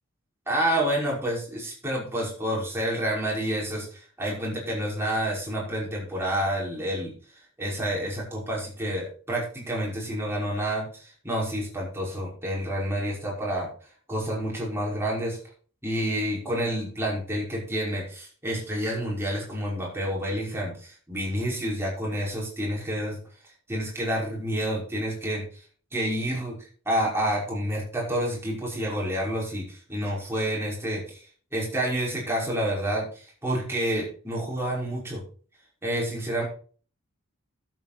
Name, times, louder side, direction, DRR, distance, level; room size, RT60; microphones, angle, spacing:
voice 1, 0.5-7.1 7.6-13.7 14.1-15.4 15.8-23.2 23.7-25.4 25.9-26.6 26.9-31.2 31.5-35.2 35.8-36.4, right 1 dB, 10° right, -4 dB, 5.6 m, -29 dB
12.5 x 8.2 x 4.3 m, 0.41 s
head